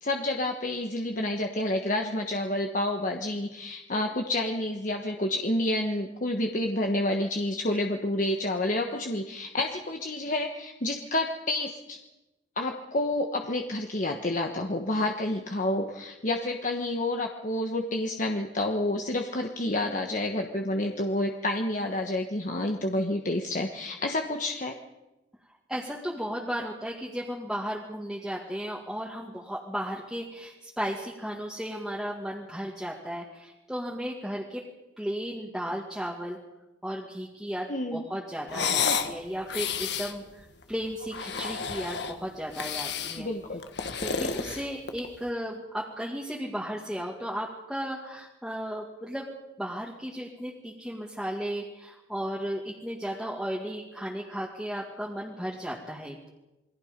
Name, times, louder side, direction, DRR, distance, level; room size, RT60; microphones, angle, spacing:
voice 1, 0.0-12.0 12.6-24.8 37.7-38.0 43.2-43.6, left 1 dB, 45° left, 3 dB, 1.3 m, -29 dB
voice 2, 25.7-34.7 35.0-36.4 36.8-43.3 44.0-49.3 49.6-56.3, equal, 5° right, -4 dB, 2.1 m, -35 dB
sound 1, 38.5-39.1 39.5-40.1 41.0-42.2 42.5-43.2 43.6-45.1, left 6 dB, 60° left, 1.5 m, -30 dB
28.0 x 22.0 x 5.3 m, 1.0 s
head